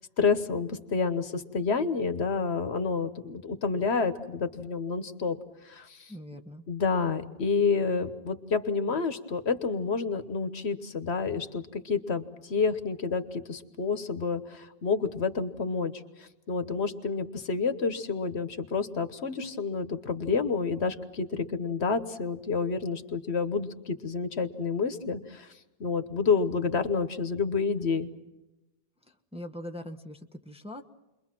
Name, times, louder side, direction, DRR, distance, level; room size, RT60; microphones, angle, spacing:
voice 1, 0.0-5.4 5.6-6.1 6.7-15.9 16.2-25.5 25.8-28.1, left 5 dB, 70° left, 10 dB, 1.4 m, -29 dB
voice 2, 6.1-6.6 29.3-30.8, left 1 dB, 5° right, 4 dB, 1.0 m, -41 dB
29.5 x 22.5 x 6.1 m, 1.0 s
omnidirectional pair, 1.1 m